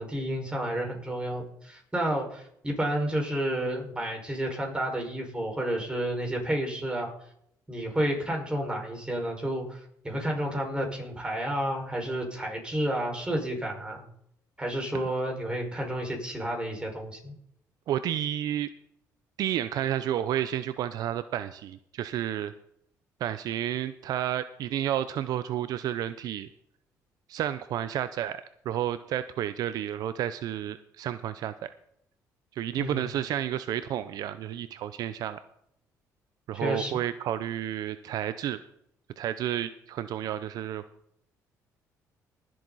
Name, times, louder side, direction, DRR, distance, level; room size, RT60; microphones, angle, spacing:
voice 1, 0.0-7.1 7.7-14.0 14.6-17.3 32.8-33.1 36.5-36.9, right 1 dB, 15° right, 0 dB, 5.3 m, -31 dB
voice 2, 17.9-18.7 19.4-22.5 23.2-26.5 27.3-31.7 32.6-35.4 36.5-38.6 39.2-40.8, right 11 dB, 70° right, 13 dB, 0.6 m, -31 dB
19.5 x 7.8 x 4.1 m, 0.70 s
cardioid pair, 90°, 7 cm